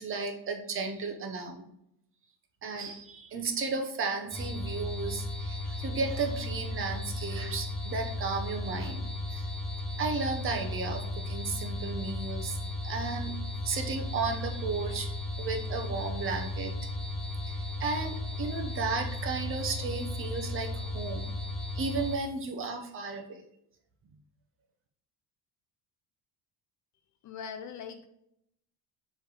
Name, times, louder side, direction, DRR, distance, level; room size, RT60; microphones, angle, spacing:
voice 1, 0.0-1.6 2.6-9.0 9.3-9.5 10.0-12.6 12.8-13.3 13.6-16.7 17.5-21.3 21.7-23.4, right 4 dB, 30° right, 4 dB, 0.8 m, -34 dB
sound 1, 4.3-22.2, left 2 dB, ahead, 0.6 m, -35 dB
voice 2, 27.2-28.1, left 7 dB, 45° left, 8 dB, 0.4 m, -41 dB
7.0 x 3.4 x 4.7 m, 0.77 s
cardioid pair, 170°, 43 cm